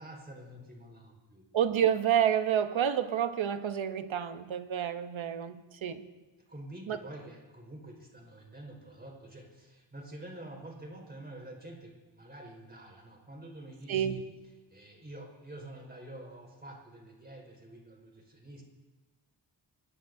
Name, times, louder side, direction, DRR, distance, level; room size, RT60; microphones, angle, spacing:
voice 1, 0.0-1.4 6.5-14.2 14.7-18.6, right 1 dB, 20° right, 0 dB, 4.9 m, -47 dB
voice 2, 1.5-6.1 6.9-7.0 13.9-14.2, right 9 dB, 80° right, 9 dB, 1.0 m, -29 dB
25.5 x 20.0 x 2.7 m, 1.2 s
wide cardioid pair, 90°, 46 cm